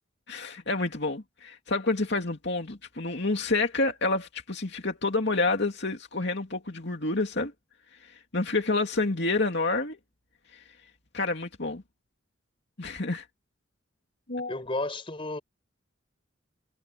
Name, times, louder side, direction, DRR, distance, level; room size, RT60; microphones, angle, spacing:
voice 1, 0.3-7.5 8.0-10.0 11.1-11.8 12.8-13.2 14.3-14.5, left 3 dB, 55° left, 2.6 m, -28 dB
voice 2, 14.5-15.4, left 2 dB, 25° left, 4.4 m, -32 dB
head